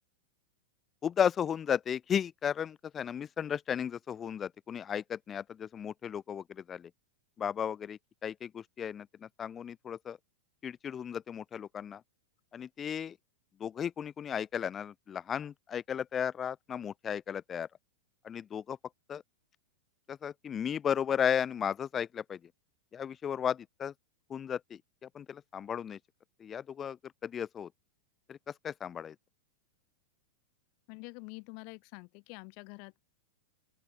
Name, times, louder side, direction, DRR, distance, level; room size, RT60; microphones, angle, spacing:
voice 1, 1.0-6.9 7.4-10.2 10.6-12.0 12.5-13.2 13.6-17.7 18.2-18.8 19.1-19.2 20.1-22.4 22.9-23.9 24.3-24.8 25.1-26.0 26.4-27.7 28.3-29.1, left 8 dB, 25° left, 0.8 m, -34 dB
voice 2, 30.9-33.0, left 38 dB, 50° left, 7.0 m, -47 dB
open air
hypercardioid pair, 105°, 0 cm